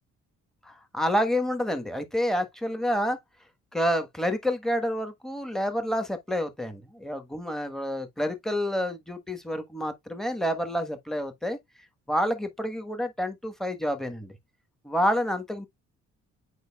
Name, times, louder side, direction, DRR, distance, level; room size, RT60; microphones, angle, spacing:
voice 1, 0.6-3.2 3.7-11.6 12.1-14.3 14.8-15.7, equal, ahead, 1.3 m, -28 dB
7.9 x 5.0 x 2.3 m
cardioid pair, 90°, 30 cm